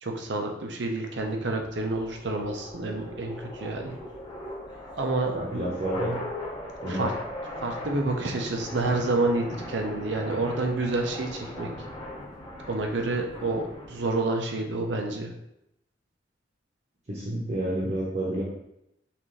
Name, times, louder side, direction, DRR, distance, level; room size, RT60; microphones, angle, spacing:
voice 1, 0.0-4.0 5.0-5.4 6.9-7.1 7.6-11.7 12.7-15.3, right 2 dB, 70° right, 3 dB, 0.7 m, -28 dB
sound 1, 1.1-14.1, left 1 dB, 25° left, 0.9 m, -39 dB
voice 2, 5.3-6.2 6.8-7.1 17.1-18.4, right 1 dB, 45° right, -4 dB, 0.9 m, -29 dB
5.7 x 2.6 x 3.2 m, 0.83 s
head